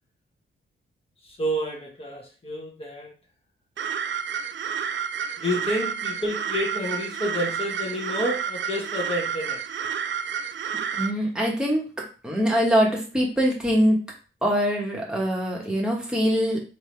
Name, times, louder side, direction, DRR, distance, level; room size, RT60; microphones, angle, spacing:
voice 1, 1.2-3.1 5.4-9.6, equal, 25° left, -2 dB, 1.3 m, -29 dB
sound 1, 3.8-11.1, right 7 dB, 60° right, 0.4 m, -30 dB
voice 2, 11.0-11.8 12.2-14.0 14.4-16.6, equal, 5° right, -2 dB, 1.3 m, -23 dB
3.4 x 2.9 x 4.5 m, 0.36 s
wide cardioid pair, 125°, 21 cm